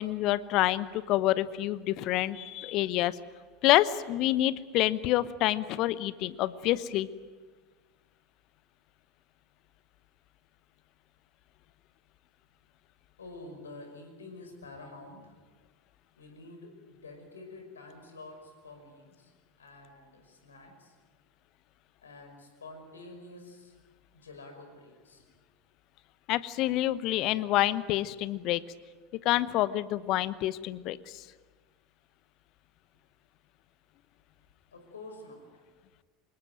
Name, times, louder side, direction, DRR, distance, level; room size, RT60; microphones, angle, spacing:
voice 1, 0.0-3.2 3.6-7.1 26.3-28.6 29.2-31.2, left 15 dB, 50° left, 17 dB, 1.0 m, -27 dB
voice 2, 13.2-15.4 16.2-19.3 19.6-21.0 22.0-23.8 24.1-25.3 34.7-35.6, left 2 dB, 75° left, 5 dB, 5.4 m, -48 dB
25.5 x 21.0 x 9.2 m, 1.4 s
figure-of-eight pair, 75°, 0 cm